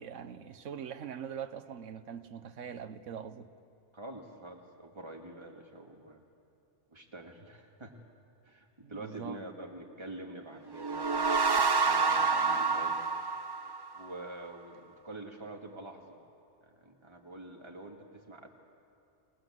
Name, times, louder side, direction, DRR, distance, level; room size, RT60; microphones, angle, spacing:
voice 1, 0.0-3.5 8.8-9.4, right 8 dB, 85° right, 12 dB, 1.3 m, -42 dB
voice 2, 3.9-6.2 6.9-7.9 8.4-13.0 13.9-16.2 16.6-18.5, right 2 dB, 20° right, 1 dB, 2.1 m, -46 dB
sound 1, 10.7-14.2, right 4 dB, 40° right, 0.3 m, -28 dB
28.5 x 19.5 x 7.6 m, 2.5 s
omnidirectional pair, 1.2 m